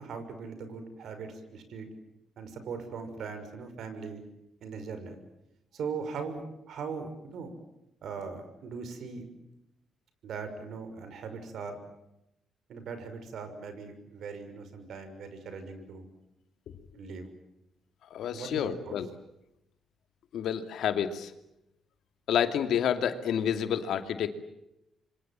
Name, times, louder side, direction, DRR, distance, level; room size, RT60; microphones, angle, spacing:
voice 1, 0.0-1.9 2.4-4.2 4.6-5.2 5.7-7.5 8.0-9.3 10.2-11.8 12.7-16.1 16.9-17.3 18.3-18.9, right 5 dB, 70° right, 9 dB, 6.0 m, -40 dB
voice 2, 18.1-19.1 20.3-21.3 22.3-24.3, left 9 dB, 75° left, 8 dB, 2.6 m, -29 dB
27.5 x 24.5 x 7.6 m, 0.86 s
cardioid pair, 90°, 0 cm